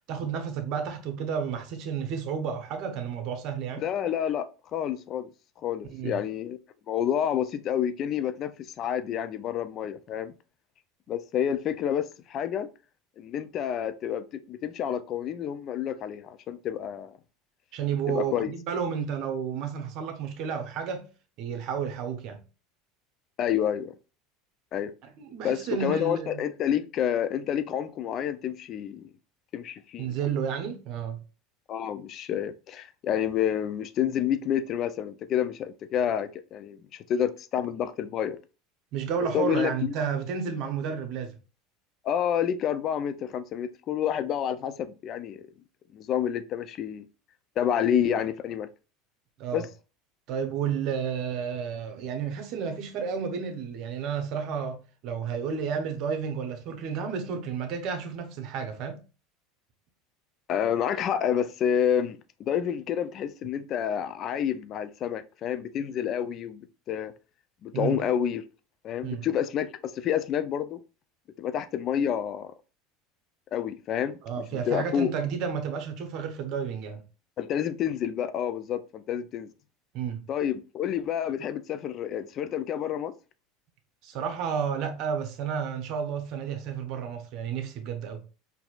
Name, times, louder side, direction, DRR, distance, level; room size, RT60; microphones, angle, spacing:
voice 1, 0.1-3.9 5.9-6.2 17.7-21.1 21.4-22.4 25.2-26.5 30.0-31.2 38.9-41.4 49.4-49.6 50.3-59.0 67.7-68.0 69.0-69.2 74.2-77.0 79.9-80.2 84.0-88.2, right 7 dB, 55° right, 0.9 m, -31 dB
voice 2, 3.8-4.5 4.7-5.3 5.6-6.6 6.9-8.5 8.8-10.3 11.1-12.7 13.2-17.1 18.1-18.5 23.4-23.9 24.7-24.9 25.4-29.1 29.5-30.2 31.7-38.4 39.3-40.0 42.0-45.4 45.9-47.1 47.6-48.7 49.5-49.7 60.5-67.1 67.6-68.4 68.8-70.8 71.4-72.5 73.5-74.2 74.5-75.1 77.4-79.5 80.3-83.1, left 9 dB, 45° left, 0.4 m, -29 dB
4.2 x 2.7 x 2.4 m
hypercardioid pair, 95°, 0 cm